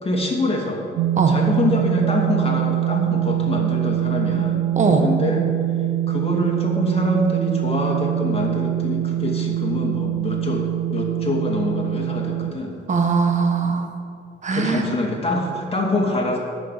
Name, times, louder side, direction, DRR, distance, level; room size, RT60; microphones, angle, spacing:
voice 1, 0.0-0.8 1.3-4.6 5.0-5.5 6.1-12.7 14.5-16.4, left 1 dB, 30° left, 0 dB, 2.5 m, -25 dB
sound 1, 1.0-12.5, right 12 dB, 80° right, 0.5 m, -23 dB
voice 2, 4.8-5.1 12.9-13.9 14.4-14.9, right 4 dB, 35° right, 4 dB, 1.5 m, -20 dB
11.0 x 6.4 x 7.6 m, 2.4 s
cardioid pair, 90°, 20 cm